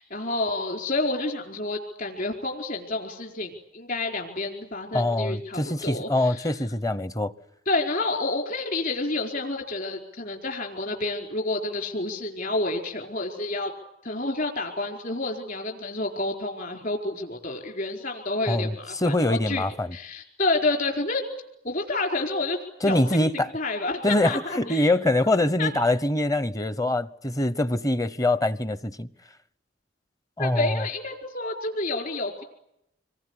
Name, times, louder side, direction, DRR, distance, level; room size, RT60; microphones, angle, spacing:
voice 1, 0.0-6.5 7.7-13.7 14.0-19.6 19.9-21.2 21.6-22.6 22.9-24.9 25.6-25.7 30.4-32.4, left 2 dB, 50° left, 4.7 m, -29 dB
voice 2, 4.9-7.3 18.5-20.0 22.8-23.5 24.0-29.1 30.4-30.9, left 1 dB, 20° left, 1.0 m, -24 dB
27.0 x 22.5 x 9.8 m
head